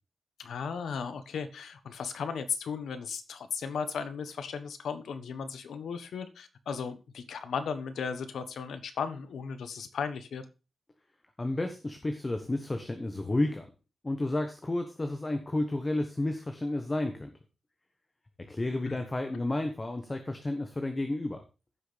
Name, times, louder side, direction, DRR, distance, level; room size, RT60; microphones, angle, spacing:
voice 1, 0.4-10.4 18.9-19.0, left 6 dB, 90° left, 10 dB, 1.2 m, -36 dB
voice 2, 11.4-13.7 14.0-17.3 18.4-21.4, left 2 dB, 20° left, 6 dB, 1.2 m, -31 dB
15.0 x 6.1 x 3.4 m, 0.32 s
wide cardioid pair, 125°, 0 cm